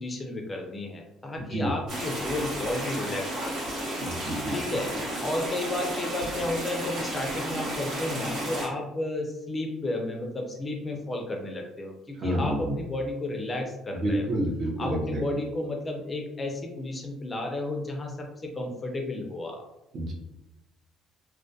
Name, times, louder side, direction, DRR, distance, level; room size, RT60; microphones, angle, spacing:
voice 1, 0.0-3.6 4.5-14.4 14.8-19.6, left 2 dB, 20° left, 2 dB, 0.4 m, -32 dB
voice 2, 1.4-1.7 4.0-4.6 4.9-5.0 12.2-12.8 13.9-15.4 19.9-20.1, right 1 dB, 50° right, 0 dB, 0.6 m, -29 dB
sound 1, 1.9-8.7, right 1 dB, 75° right, 1.3 m, -33 dB
2.2 x 2.1 x 2.6 m, 0.93 s
cardioid pair, 120°, 0 cm